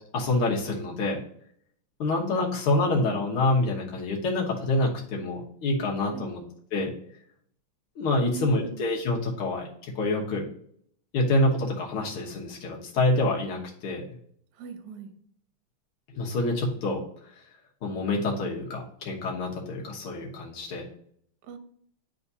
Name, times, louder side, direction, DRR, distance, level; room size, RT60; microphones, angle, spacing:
voice 1, 0.1-1.2 2.0-6.4 6.7-6.9 8.0-10.4 11.1-14.1 16.1-17.3 17.8-20.9, left 2 dB, 80° left, -2 dB, 2.1 m, -27 dB
voice 2, 8.2-8.9 14.6-15.1 21.4-21.6, right 5 dB, 65° right, 7 dB, 1.1 m, -40 dB
10.0 x 3.5 x 2.7 m, 0.63 s
omnidirectional pair, 2.4 m